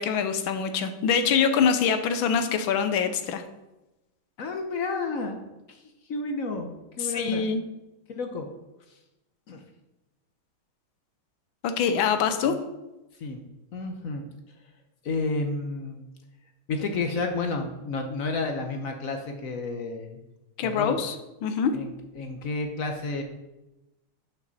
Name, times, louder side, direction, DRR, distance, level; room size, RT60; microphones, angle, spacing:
voice 1, 0.0-3.4 7.1-7.6 11.6-12.6 20.6-21.1 21.4-21.7, left 6 dB, 75° left, 9 dB, 1.5 m, -24 dB
voice 2, 4.4-5.8 6.1-7.4 8.1-8.5 9.5-9.6 12.4-12.6 13.2-13.4 13.7-14.2 15.0-16.0 16.7-20.2 20.6-21.1 21.7-23.2, left 3 dB, 55° left, 5 dB, 1.0 m, -31 dB
11.0 x 5.8 x 4.1 m, 0.99 s
omnidirectional pair, 2.3 m